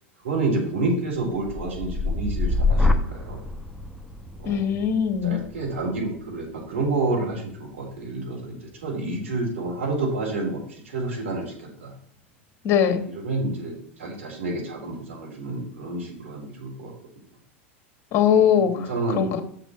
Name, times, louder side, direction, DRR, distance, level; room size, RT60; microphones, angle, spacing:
voice 1, 0.2-3.5 4.4-4.6 5.2-11.9 13.1-16.9 18.7-19.4, right 2 dB, 75° right, -2 dB, 3.8 m, -29 dB
sound 1, 1.3-9.2 9.7-10.1, left 2 dB, ahead, 0.9 m, -28 dB
voice 2, 4.4-5.4 12.6-13.0 18.1-18.9 19.1-19.4, left 8 dB, 40° left, 7 dB, 1.4 m, -21 dB
6.8 x 5.1 x 6.9 m, 0.66 s
hypercardioid pair, 95°, 7 cm